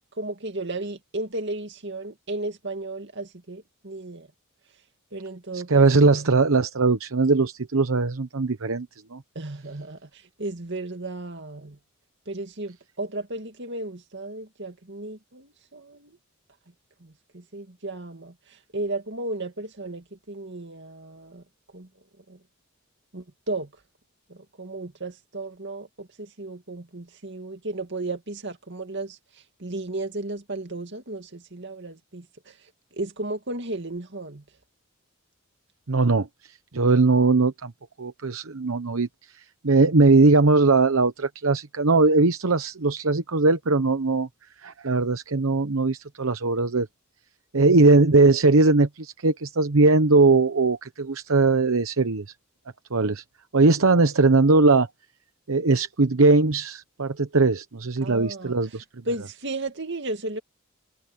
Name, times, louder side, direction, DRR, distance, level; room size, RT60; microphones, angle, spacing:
voice 1, 0.2-4.3 5.1-6.1 9.3-11.8 12.3-16.2 17.0-18.3 18.7-21.4 21.7-21.9 22.3-22.4 23.1-23.7 24.3-29.2 29.6-32.5 33.0-34.4 47.5-47.8 58.0-58.5 59.1-60.4, right 2 dB, 55° right, 2.4 m, -34 dB
voice 2, 5.5-9.2 35.9-36.3 36.7-37.7 38.0-39.1 39.6-44.3 44.6-46.9 47.5-52.3 52.9-53.2 53.5-54.9 55.5-58.8, right 3 dB, 70° right, 0.9 m, -20 dB
head